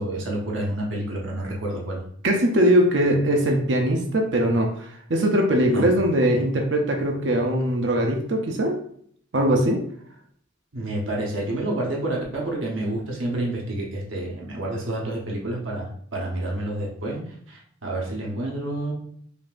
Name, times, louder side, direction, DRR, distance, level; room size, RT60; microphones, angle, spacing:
voice 1, 0.0-2.0 5.6-5.9 10.7-17.2 17.5-18.9, right 1 dB, 80° right, -2 dB, 1.1 m, -29 dB
voice 2, 2.2-4.7 5.1-8.8 9.3-9.8, equal, 65° right, 2 dB, 0.6 m, -21 dB
5.2 x 2.7 x 2.5 m, 0.62 s
head